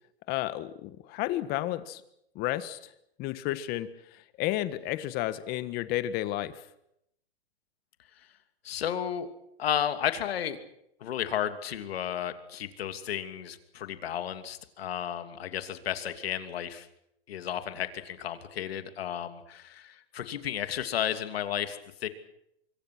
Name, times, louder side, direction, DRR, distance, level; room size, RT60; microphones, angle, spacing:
voice 1, 0.3-2.0 2.3-2.9 3.2-6.6, left 14 dB, 30° left, 14 dB, 1.5 m, -32 dB
voice 2, 8.6-9.3 9.6-10.6 11.0-16.9 17.3-22.1, left 10 dB, 70° left, 9 dB, 2.8 m, -33 dB
24.5 x 24.5 x 6.2 m, 0.77 s
hypercardioid pair, 150°, 31 cm